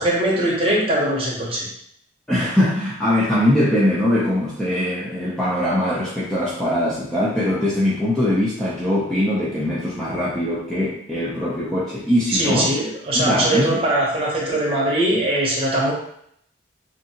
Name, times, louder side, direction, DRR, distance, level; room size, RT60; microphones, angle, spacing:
voice 1, 0.0-1.7 12.3-15.9, right 1 dB, 30° right, -4 dB, 0.7 m, -21 dB
voice 2, 2.3-12.8 13.1-13.8, left 1 dB, 5° left, -8 dB, 0.4 m, -21 dB
2.7 x 2.5 x 2.7 m, 0.71 s
head